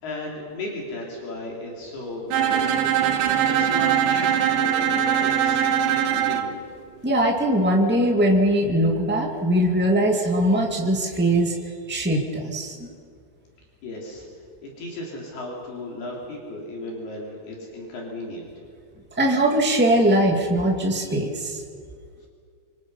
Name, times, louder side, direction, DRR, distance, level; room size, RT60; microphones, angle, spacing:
voice 1, 0.0-2.9 3.5-6.6 13.8-14.3 14.8-18.5, left 2 dB, 65° left, -2 dB, 5.0 m, -35 dB
Bowed string instrument, 2.3-6.5, right 9 dB, 80° right, 3.3 m, -21 dB
voice 2, 7.0-11.5 11.9-12.7 19.2-21.6, right 1 dB, 15° right, 0 dB, 0.3 m, -21 dB
27.0 x 25.0 x 5.6 m, 2.2 s
omnidirectional pair, 4.9 m